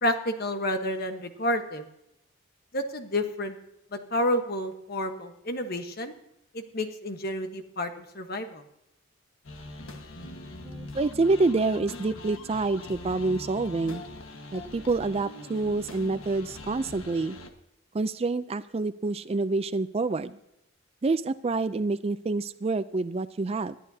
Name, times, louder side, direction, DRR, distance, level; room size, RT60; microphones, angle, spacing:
voice 1, 0.0-1.8 2.7-3.6 3.9-6.1 6.5-8.6, left 1 dB, 45° left, 7 dB, 1.2 m, -30 dB
sound 1, 9.4-17.5, left 2 dB, 75° left, 1.4 m, -42 dB
voice 2, 10.6-14.0 14.5-17.4 17.9-20.4 21.0-23.8, right 3 dB, 30° right, 13 dB, 0.4 m, -27 dB
20.5 x 12.0 x 2.8 m, 0.85 s
head